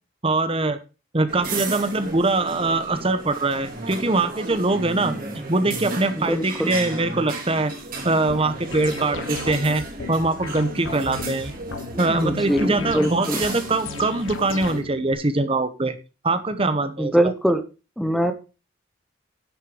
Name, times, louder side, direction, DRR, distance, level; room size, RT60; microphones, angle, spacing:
voice 1, 0.2-0.8 1.1-5.1 5.5-7.7 8.0-9.8 10.1-11.5 12.0-16.0 16.2-17.3, right 2 dB, 30° right, 11 dB, 0.9 m, -23 dB
sound 1, 1.3-14.8, right 3 dB, 45° right, 3.1 m, -34 dB
voice 2, 6.2-6.8 12.0-13.4 17.0-17.6 18.0-18.3, equal, ahead, 8 dB, 0.8 m, -22 dB
sound 2, 8.3-15.1, left 4 dB, 85° left, 1.1 m, -36 dB
10.0 x 6.4 x 5.0 m, 0.31 s
head